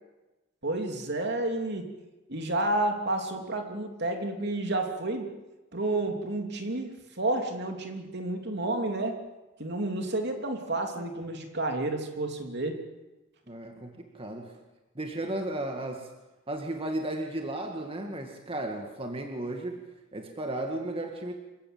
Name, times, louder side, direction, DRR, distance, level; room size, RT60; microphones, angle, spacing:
voice 1, 0.6-1.9 2.3-5.3 5.7-9.2 9.6-12.8, right 2 dB, 60° right, 4 dB, 3.1 m, -30 dB
voice 2, 13.5-14.6 15.0-16.1 16.5-21.3, right 1 dB, 30° right, 3 dB, 2.0 m, -34 dB
26.5 x 16.0 x 7.9 m, 1.1 s
head